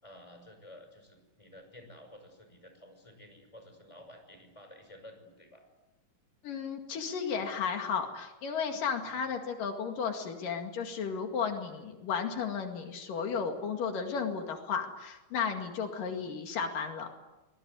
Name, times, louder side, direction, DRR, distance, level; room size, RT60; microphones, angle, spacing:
voice 1, 0.0-5.6 16.0-16.1, left 1 dB, 10° left, 5 dB, 5.7 m, -52 dB
voice 2, 6.4-17.2, left 6 dB, 80° left, 4 dB, 3.8 m, -34 dB
24.5 x 21.5 x 9.7 m, 1.1 s
omnidirectional pair, 3.8 m